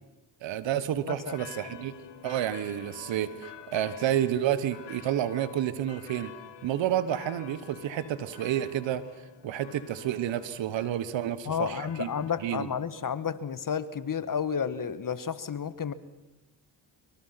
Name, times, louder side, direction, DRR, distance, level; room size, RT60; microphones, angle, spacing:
voice 1, 0.4-1.9 2.2-6.3 6.6-9.0 9.4-12.1 12.4-12.7, right 11 dB, 90° right, 14 dB, 1.5 m, -30 dB
sound 1, 1.3-12.6, left 9 dB, 70° left, 1.9 m, -48 dB
voice 2, 11.4-15.9, left 7 dB, 45° left, 14 dB, 1.6 m, -31 dB
24.5 x 24.0 x 6.0 m, 1.0 s
cardioid pair, 70°, 44 cm